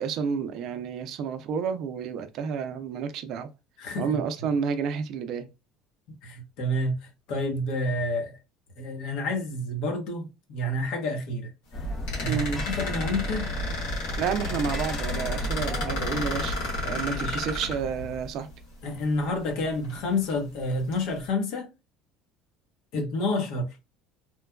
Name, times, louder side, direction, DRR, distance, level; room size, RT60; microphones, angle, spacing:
voice 1, 0.0-3.5 4.0-5.5 12.2-12.7 14.2-16.6 16.8-18.5, right 6 dB, 55° right, 0.4 m, -30 dB
voice 2, 3.8-4.2 6.2-8.4 8.8-11.5 12.2-13.5 17.1-17.4 18.8-21.7 22.9-23.7, left 1 dB, 65° left, 0.9 m, -29 dB
sound 1, 11.7-18.2, left 1 dB, 25° left, 0.5 m, -33 dB
sound 2, 12.1-18.3 19.2-19.3 19.8-20.4 20.9-21.1, left 1 dB, 85° left, 1.6 m, -34 dB
3.1 x 2.2 x 2.2 m
cardioid pair, 135°, 0 cm